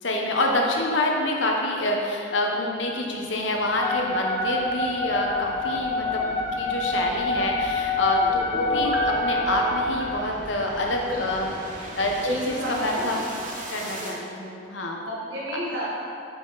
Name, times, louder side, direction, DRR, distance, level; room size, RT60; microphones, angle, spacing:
voice 1, 0.0-13.2 13.7-15.1 15.5-15.6, left 1 dB, 75° left, 0 dB, 1.0 m, -27 dB
sound 1, 2.7-14.2, right 1 dB, 40° right, 1.1 m, -41 dB
Wind instrument woodwind instrument, 3.8-9.9, left 2 dB, 20° left, 0.9 m, -26 dB
Piano, 8.5-11.2 11.6-11.7, right 1 dB, 10° right, 0.5 m, -34 dB
voice 2, 12.2-13.1 13.9-14.2 15.0-15.9, equal, 70° right, -9 dB, 1.5 m, -31 dB
8.0 x 5.8 x 4.1 m, 2.5 s
head